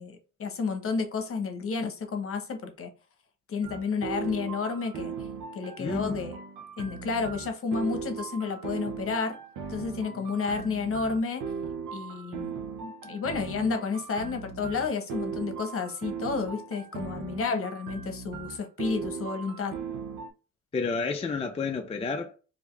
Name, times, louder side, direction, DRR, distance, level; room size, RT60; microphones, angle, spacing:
voice 1, 0.0-2.9 3.5-5.1 5.5-6.4 6.8-9.4 9.7-11.4 11.9-12.5 12.8-19.8, left 4 dB, 45° left, 0.9 m, -31 dB
sound 1, 3.6-20.3, right 6 dB, 80° right, 0.8 m, -38 dB
voice 2, 5.8-6.2 10.1-10.2 20.7-22.4, left 4 dB, 20° left, 0.4 m, -30 dB
3.5 x 2.7 x 3.2 m
cardioid pair, 90°, 30 cm